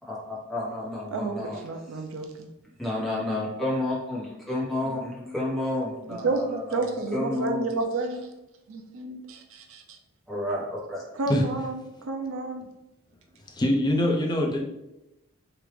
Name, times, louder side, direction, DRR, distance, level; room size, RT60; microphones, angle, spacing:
voice 1, 0.0-1.6 1.9-2.0 2.8-6.8 7.1-7.7 10.3-11.0, left 1 dB, ahead, -7 dB, 1.0 m, -30 dB
voice 2, 1.1-2.5 6.1-8.2 8.7-9.8 11.2-12.7, right 3 dB, 65° right, 4 dB, 0.5 m, -30 dB
voice 3, 13.5-14.6, left 1 dB, 20° left, 0 dB, 0.5 m, -23 dB
3.2 x 2.5 x 3.2 m, 0.92 s
head